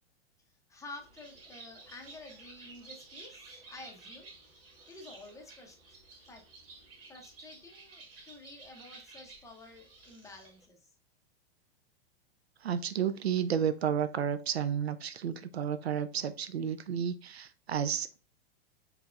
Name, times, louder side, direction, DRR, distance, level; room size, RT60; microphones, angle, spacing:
voice 1, 0.7-4.3 4.9-5.8 6.3-6.4 7.1-10.8, left 2 dB, 10° left, 0.8 m, -50 dB
Bird, 0.9-10.6, right 3 dB, 60° right, 1.4 m, -53 dB
voice 2, 12.6-18.2, right 8 dB, 80° right, 0.5 m, -32 dB
4.5 x 3.4 x 2.4 m
figure-of-eight pair, 105°, 31 cm